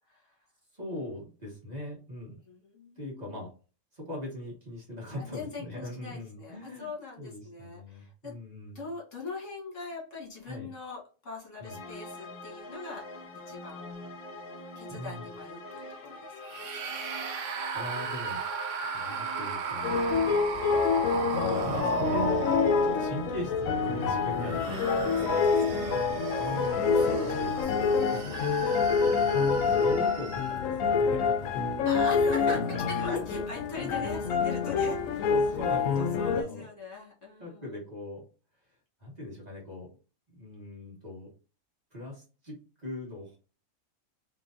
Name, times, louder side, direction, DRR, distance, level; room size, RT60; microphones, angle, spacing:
voice 1, 0.7-2.4 3.0-3.5 3.9-6.9 7.2-8.8 10.5-10.7 11.6-11.8 14.9-15.3 17.7-18.4 18.9-20.0 21.0-26.9 27.2-27.8 28.1-28.2 29.2-31.6 32.1-33.5 33.8-34.2 35.3-36.7 37.4-38.2 39.0-40.0 40.3-41.3 41.9-43.4, left 1 dB, 30° right, -3 dB, 1.5 m, -40 dB
voice 2, 2.5-3.4 5.2-8.3 8.8-13.9 14.8-15.6 16.0-16.7 24.6-25.2 25.7-26.2 26.9-28.1 31.9-35.3 35.6-37.7, left 3 dB, 65° left, -2 dB, 1.9 m, -42 dB
sound 1, 11.6-27.6, left 2 dB, 50° left, 0.9 m, -44 dB
sound 2, 16.4-23.5 24.2-30.7, right 6 dB, 70° right, 1.0 m, -36 dB
sound 3, 19.8-36.4, left 5 dB, 85° left, 1.0 m, -27 dB
3.7 x 3.2 x 2.5 m, 0.35 s
omnidirectional pair, 1.4 m